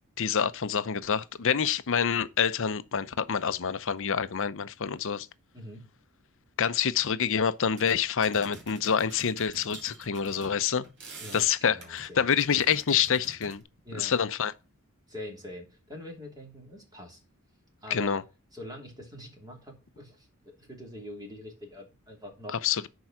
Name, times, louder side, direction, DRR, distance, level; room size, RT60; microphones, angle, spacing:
voice 1, 0.2-5.3 6.6-10.8 11.3-13.6 14.0-14.5 17.9-18.2 22.6-22.9, left 7 dB, 60° left, 0.7 m, -27 dB
voice 2, 5.5-5.9 11.2-12.3 13.8-14.1 15.1-17.2 17.8-18.2 18.5-22.6, left 1 dB, 20° right, 3.0 m, -44 dB
sound 1, 7.3-7.4 7.6-13.6, right 3 dB, 55° right, 2.4 m, -47 dB
10.5 x 4.7 x 5.9 m
head